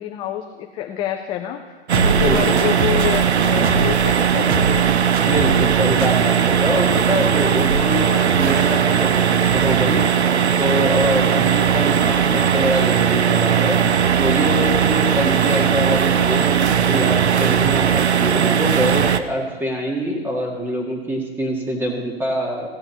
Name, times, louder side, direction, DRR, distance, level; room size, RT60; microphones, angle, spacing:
voice 1, 0.0-4.9, left 11 dB, 15° left, 3 dB, 0.5 m, -27 dB
sound 1, 1.9-4.0 4.5-4.9 5.1-5.7 6.0-6.1, right 2 dB, 55° right, 1.6 m, -24 dB
sound 2, 1.9-19.2, right 8 dB, 85° right, 0.7 m, -18 dB
voice 2, 2.2-2.6 5.2-10.0 10.6-22.7, equal, 5° right, 0 dB, 2.0 m, -24 dB
16.0 x 7.7 x 4.5 m, 1.4 s
hypercardioid pair, 125°, 32 cm